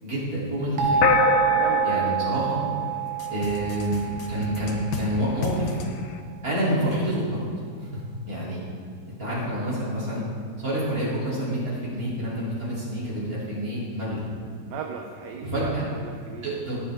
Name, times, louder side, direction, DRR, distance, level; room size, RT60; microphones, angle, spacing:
voice 1, 0.0-1.0 1.8-2.6 3.3-5.8 6.4-7.2 8.3-8.6 9.2-10.2 10.6-14.2 15.4-15.8 16.4-16.8, right 1 dB, 50° right, -8 dB, 3.8 m, -28 dB
sound 1, 0.8-5.5, right 10 dB, 85° right, 1.9 m, -27 dB
sound 2, 1.0-3.6, left 6 dB, 70° left, 1.2 m, -25 dB
voice 2, 1.6-2.1 14.7-15.7 16.0-16.5, right 6 dB, 70° right, 3 dB, 1.3 m, -36 dB
sound 3, 3.2-5.1 5.4-5.9, left 5 dB, 90° left, 1.7 m, -35 dB
16.5 x 7.8 x 3.6 m, 2.2 s
omnidirectional pair, 2.0 m